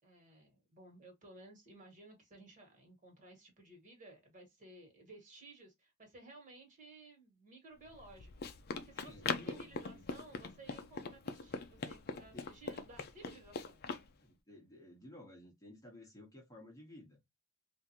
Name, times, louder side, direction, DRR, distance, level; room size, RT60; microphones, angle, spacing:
voice 1, 0.0-8.3 8.9-13.8, right 2 dB, 35° right, 1.6 m, -57 dB
Run, 7.9-14.1, left 5 dB, 45° left, 0.5 m, -42 dB
voice 2, 8.9-10.2 12.3-12.5 14.2-17.2, left 1 dB, 15° left, 1.0 m, -55 dB
3.5 x 2.6 x 2.7 m
head